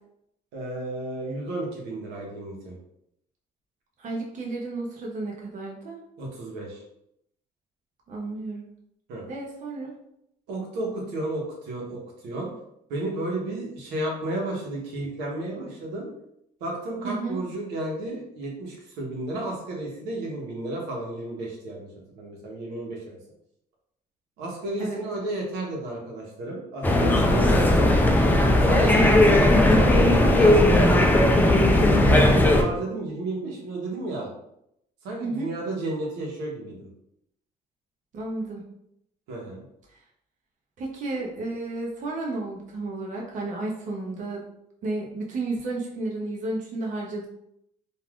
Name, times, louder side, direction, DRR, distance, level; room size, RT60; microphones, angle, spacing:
voice 1, 0.5-2.7 6.2-6.8 9.1-9.2 10.5-12.5 12.9-16.1 16.6-21.9 22.1-23.2 24.4-27.8 28.6-29.2 29.7-34.3 35.0-36.9 39.3-39.6, right 2 dB, 90° right, -2 dB, 0.9 m, -32 dB
voice 2, 4.0-6.0 8.1-8.7 9.3-9.9 17.0-17.4 24.8-25.0 35.2-35.5 38.1-38.6 40.8-44.4 44.8-47.3, right 2 dB, 50° right, -1 dB, 0.7 m, -32 dB
sound 1, 26.8-32.6, left 1 dB, 10° left, 0.3 m, -17 dB
3.2 x 2.4 x 2.4 m, 0.77 s
cardioid pair, 110°, 17 cm